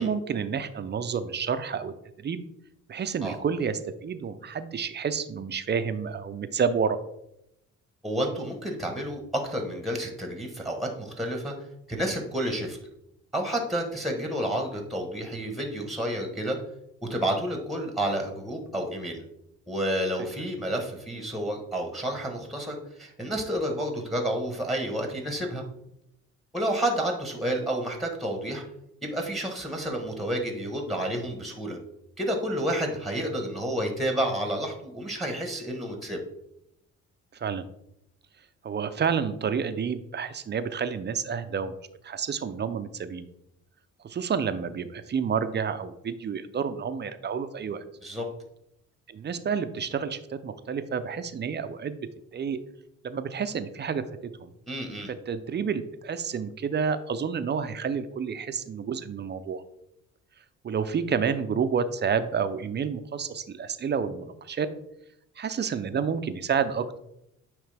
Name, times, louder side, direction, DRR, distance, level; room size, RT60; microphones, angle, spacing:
voice 1, 0.0-2.4 2.9-7.0 37.3-37.6 38.6-41.8 42.0-43.3 44.0-47.8 49.1-52.1 52.3-52.6 53.0-54.5 55.1-59.6 60.6-64.7 65.4-67.0, right 6 dB, 35° right, 11 dB, 0.5 m, -29 dB
voice 2, 8.0-11.5 11.9-12.8 13.3-16.6 17.0-19.2 19.7-25.6 26.5-28.6 29.0-31.8 32.2-36.2 48.0-48.3 54.7-55.1, right 1 dB, ahead, 3 dB, 1.2 m, -30 dB
9.1 x 3.2 x 3.4 m, 0.80 s
cardioid pair, 90°, 30 cm